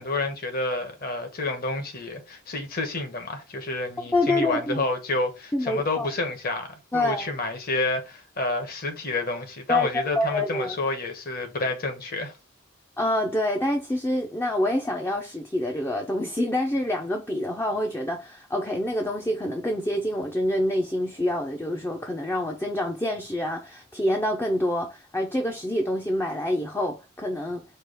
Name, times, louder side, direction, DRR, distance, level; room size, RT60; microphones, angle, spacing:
voice 1, 0.0-12.3, left 2 dB, 45° left, 1.1 m, -29 dB
voice 2, 4.1-4.8 5.5-6.1 6.9-7.3 9.7-10.8 13.0-27.6, left 1 dB, 10° left, 0.5 m, -27 dB
4.5 x 2.4 x 4.9 m
head